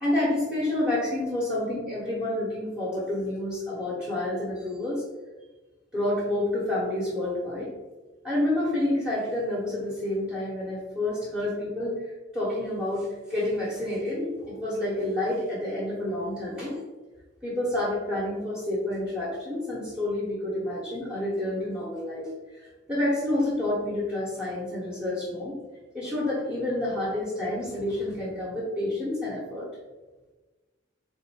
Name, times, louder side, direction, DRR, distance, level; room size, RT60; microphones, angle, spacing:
voice 1, 0.0-5.0 5.9-7.7 8.2-12.0 12.3-16.8 17.4-25.6 25.9-29.7, left 1 dB, 5° right, -8 dB, 1.2 m, -29 dB
4.2 x 2.6 x 4.6 m, 1.2 s
head